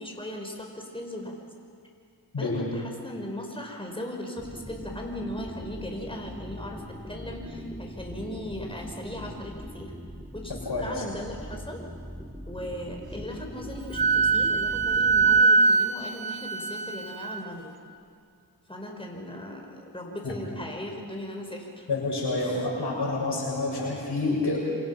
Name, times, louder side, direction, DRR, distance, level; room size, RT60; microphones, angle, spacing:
voice 1, 0.0-1.4 2.4-9.9 10.3-11.8 12.5-17.7 18.7-21.9 22.4-22.8, left 1 dB, 15° left, 1 dB, 5.2 m, -38 dB
voice 2, 2.3-2.7 10.6-10.9 20.2-20.3 21.9-24.6, left 2 dB, 90° left, -3 dB, 6.7 m, -28 dB
sound 1, 4.4-15.4, equal, 5° right, 3.0 m, -41 dB
Wind instrument woodwind instrument, 13.9-17.4, right 4 dB, 65° right, 1.4 m, -22 dB
27.0 x 26.5 x 5.8 m, 2.4 s
cardioid pair, 45°, 39 cm